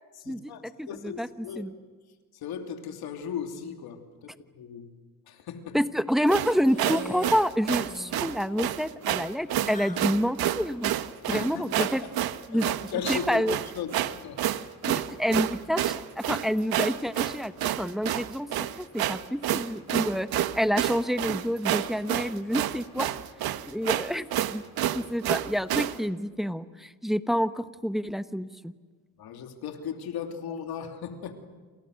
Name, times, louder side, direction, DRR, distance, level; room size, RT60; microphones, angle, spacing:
voice 1, 0.2-1.6 2.3-4.9 5.3-5.8 11.3-12.0 12.5-13.4 13.7-13.9 14.2-14.4 29.2-31.3, left 8 dB, 90° left, 5 dB, 3.1 m, -37 dB
voice 2, 0.8-1.3 1.6-1.7 5.7-10.9 11.2-12.0 12.5-12.7 13.1-13.6 14.9-23.1 23.7-24.6 24.9-28.7, equal, ahead, 11 dB, 1.1 m, -28 dB
sound 1, 6.3-26.0, right 12 dB, 85° right, 1.2 m, -29 dB
sound 2, 6.7-7.5 7.8-8.4 9.6-10.1, left 2 dB, 20° left, 1.8 m, -41 dB
29.0 x 28.0 x 6.6 m, 1.4 s
cardioid pair, 90°, 36 cm